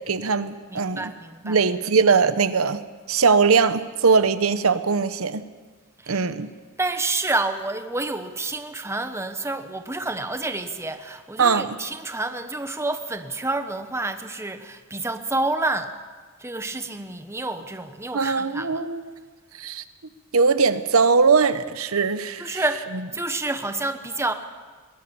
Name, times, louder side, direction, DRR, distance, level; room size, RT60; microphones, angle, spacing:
voice 1, 0.1-1.1 1.4-2.8 3.1-5.4 6.1-6.5 11.4-11.8 18.1-19.1 19.6-19.8 20.3-22.6, right 5 dB, 80° right, 12 dB, 0.9 m, -20 dB
voice 2, 0.7-1.6 6.0-6.2 6.8-15.9 16.4-18.8 22.4-22.9 23.1-24.3, right 2 dB, 15° right, 8 dB, 1.0 m, -28 dB
21.5 x 19.0 x 7.0 m, 1.4 s
head